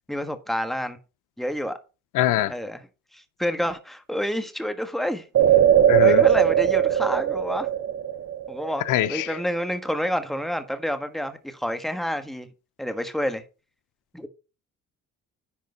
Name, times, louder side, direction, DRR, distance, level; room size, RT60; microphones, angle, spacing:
voice 1, 0.1-1.0 1.4-1.8 2.5-2.8 3.1-5.3 6.0-7.7 8.5-12.5 12.8-13.4 14.1-14.3, equal, ahead, 1.3 m, -29 dB
voice 2, 2.1-2.5 5.9-6.2 8.9-9.3, left 13 dB, 85° left, 0.7 m, -23 dB
sound 1, 5.3-9.0 9.4-9.5, right 10 dB, 55° right, 0.8 m, -19 dB
10.5 x 3.7 x 5.4 m
cardioid pair, 90°, 30 cm